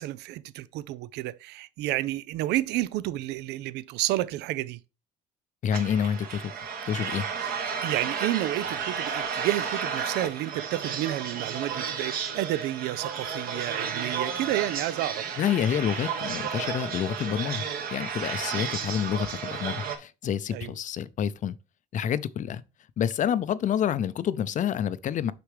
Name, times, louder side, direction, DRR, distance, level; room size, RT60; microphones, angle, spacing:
voice 1, 0.0-4.8 7.8-15.3 18.4-18.5 20.5-20.7, right 15 dB, 85° right, 0.4 m, -30 dB
voice 2, 5.6-6.5 6.9-7.3 15.4-17.6 17.9-21.6 21.9-22.6 23.0-25.3, left 9 dB, 50° left, 0.5 m, -28 dB
sound 1, 5.7-20.0, right 6 dB, 60° right, 1.6 m, -32 dB
6.7 x 6.0 x 3.2 m
cardioid pair, 110°, 17 cm